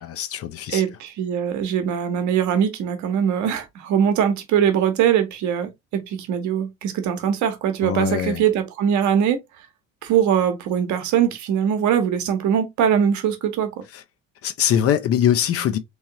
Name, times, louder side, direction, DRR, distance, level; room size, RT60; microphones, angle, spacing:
voice 1, 0.0-0.8 7.8-8.4 14.4-15.8, left 9 dB, 40° left, 0.7 m, -22 dB
voice 2, 0.7-9.4 10.0-13.8, right 8 dB, 50° right, 1.1 m, -21 dB
3.6 x 3.2 x 2.8 m
figure-of-eight pair, 60°, 38 cm